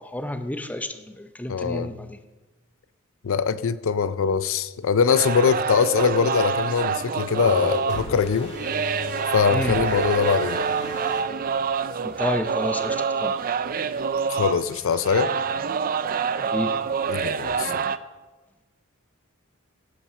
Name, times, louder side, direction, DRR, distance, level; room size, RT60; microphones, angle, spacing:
voice 1, 0.0-2.2 9.5-9.8 12.0-13.3 16.4-16.8, left 1 dB, 5° left, 8 dB, 0.6 m, -30 dB
voice 2, 1.5-1.9 3.2-8.5 9.3-10.7 14.3-15.3 17.1-17.8, left 6 dB, 65° left, 14 dB, 0.5 m, -22 dB
sound 1, 5.1-18.0, right 6 dB, 40° right, 0.4 m, -27 dB
sound 2, 7.4-11.2, equal, 35° left, 3.2 m, -34 dB
15.5 x 5.9 x 6.7 m, 1.2 s
head